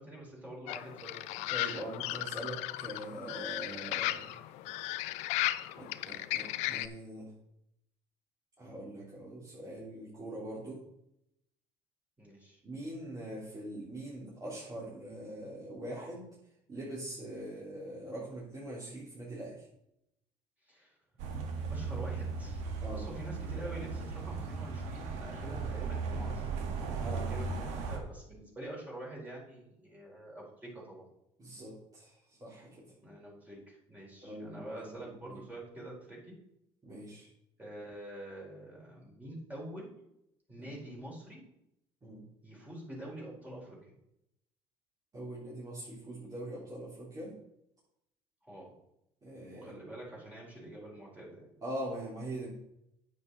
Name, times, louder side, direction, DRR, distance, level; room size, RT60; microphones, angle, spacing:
voice 1, 0.0-1.8 12.2-12.6 20.6-21.0 21.7-26.9 27.3-31.1 33.0-36.4 37.6-39.9 40.5-41.4 42.4-43.9 48.4-48.7 49.5-51.4, right 1 dB, 15° right, -4 dB, 4.3 m, -46 dB
sound 1, 0.7-6.9, left 16 dB, 80° left, 0.5 m, -36 dB
voice 2, 1.5-4.3 5.8-7.3 8.6-10.8 12.6-16.3 16.7-19.7 22.8-23.1 27.0-27.3 31.4-32.1 32.4-32.9 34.2-35.0 35.3-35.4 36.8-37.3 40.6-40.7 42.0-42.2 45.1-47.3 49.2-49.9 51.6-52.5, right 1 dB, 30° right, -8 dB, 3.8 m, -42 dB
sound 2, 21.2-28.0, right 4 dB, 80° right, 1.6 m, -37 dB
9.2 x 8.0 x 4.1 m, 0.80 s
supercardioid pair, 95°, 12 cm